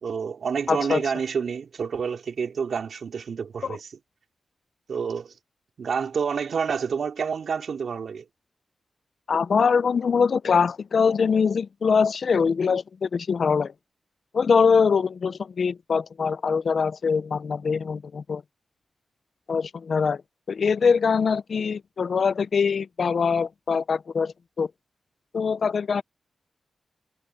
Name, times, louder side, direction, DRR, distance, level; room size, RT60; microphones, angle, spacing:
voice 1, 0.0-3.9 4.9-5.3 5.8-8.2, right 6 dB, 75° right, 4.1 m, -28 dB
voice 2, 0.7-1.0 9.3-13.7 14.3-18.4 19.5-20.2 20.5-24.7 25.3-26.0, left 5 dB, 60° left, 0.5 m, -23 dB
wide cardioid pair, 130°, 0 cm